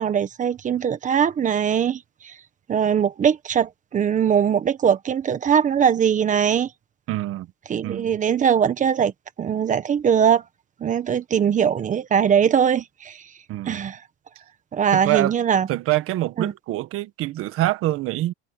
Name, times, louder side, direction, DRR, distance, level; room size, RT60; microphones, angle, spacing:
voice 1, 0.0-2.3 2.7-6.7 7.7-9.1 9.4-10.4 10.8-13.2 13.7-14.0 14.7-15.7 16.4-16.5, right 8 dB, 25° right, 1.5 m, -21 dB
voice 2, 7.1-7.5 7.8-8.1 13.5-13.9 14.9-15.3 15.7-18.3, right 16 dB, 45° right, 1.7 m, -25 dB
supercardioid pair, 140°, 30 cm